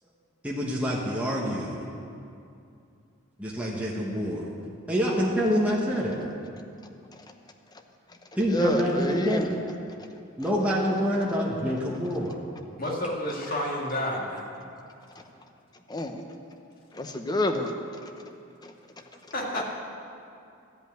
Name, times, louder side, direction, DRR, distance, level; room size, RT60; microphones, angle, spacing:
voice 1, 0.4-1.8 3.4-4.5 4.9-6.2 8.4-9.4 10.4-12.4, equal, 5° right, -5 dB, 1.1 m, -26 dB
voice 2, 8.5-9.5 15.9-16.2 16.9-17.7 18.0-18.1 18.6-18.7 19.5-19.6, left 1 dB, 20° left, 5 dB, 0.7 m, -28 dB
voice 3, 12.8-14.5 19.3-19.6, left 1 dB, 45° left, -2 dB, 1.9 m, -30 dB
13.0 x 5.4 x 9.1 m, 2.5 s
head